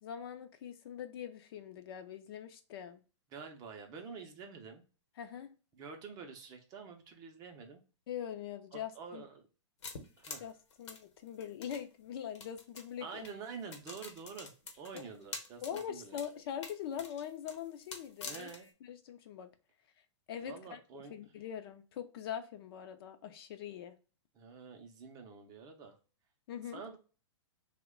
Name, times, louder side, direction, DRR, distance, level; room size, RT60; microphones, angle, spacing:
voice 1, 0.0-3.0 5.2-5.5 8.1-9.2 10.4-13.3 14.9-15.0 15.6-18.5 18.8-19.5 20.3-24.0 26.5-26.8, left 9 dB, 50° left, 0.5 m, -43 dB
voice 2, 3.3-4.8 5.7-7.8 8.7-9.5 10.2-10.4 13.0-16.2 18.3-18.7 20.4-21.1 24.3-26.0 26.7-27.0, right 5 dB, 25° right, 0.5 m, -48 dB
sound 1, 9.8-11.8 12.3-12.9 13.2-13.3 13.7-15.8 16.1-16.3 16.6-18.7, left 4 dB, 70° left, 0.9 m, -46 dB
2.9 x 2.1 x 3.5 m
hypercardioid pair, 145°, 15 cm